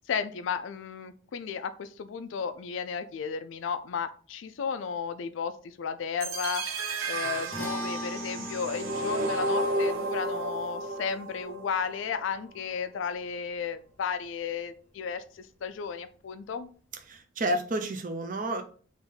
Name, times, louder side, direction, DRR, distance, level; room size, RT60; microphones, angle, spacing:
voice 1, 0.1-6.6 7.1-16.7, left 6 dB, 70° left, 11 dB, 0.4 m, -34 dB
sound 1, 6.2-12.2, right 2 dB, 85° right, 0.8 m, -32 dB
sound 2, 7.5-14.0, left 1 dB, 10° left, 0.5 m, -42 dB
voice 2, 17.1-18.6, right 1 dB, 40° right, 6 dB, 0.5 m, -30 dB
3.5 x 2.6 x 3.8 m, 0.42 s
head